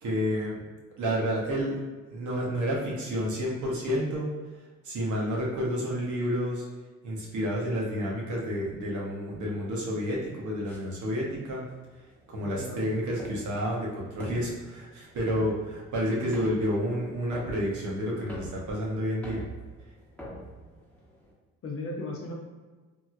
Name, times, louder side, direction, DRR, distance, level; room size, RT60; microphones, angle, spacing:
voice 1, 0.0-0.6 1.0-1.7 2.1-4.3 4.8-6.6 7.0-11.6 12.3-19.4, equal, 75° right, -3 dB, 0.9 m, -30 dB
sound 1, 10.7-21.3, equal, 5° left, 1.0 m, -45 dB
voice 2, 12.4-12.9 21.6-22.3, left 2 dB, 50° left, -1 dB, 0.7 m, -36 dB
2.9 x 2.7 x 2.4 m, 1.3 s
cardioid pair, 90°, 30 cm